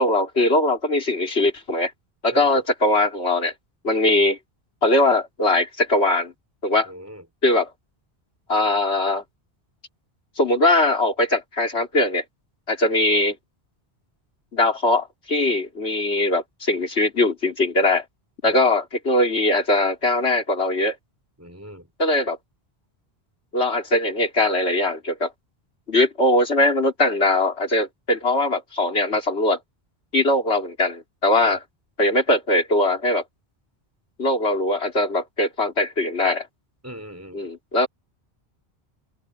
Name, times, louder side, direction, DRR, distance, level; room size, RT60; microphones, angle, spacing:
voice 1, 0.0-1.9 2.2-3.5 3.8-4.4 4.8-6.3 6.6-6.9 7.4-7.7 8.5-9.2 10.4-12.2 12.7-13.3 14.5-18.0 18.4-20.9 22.0-22.4 23.5-25.3 25.9-29.6 30.1-31.6 32.0-33.2 34.2-36.5 37.3-37.9, left 2 dB, 85° left, 3.1 m, -21 dB
voice 2, 2.3-2.6 6.9-7.2 18.4-18.6 21.4-21.9 31.4-31.6 36.8-37.4, equal, 15° right, 5.4 m, -39 dB
open air
omnidirectional pair, 1.1 m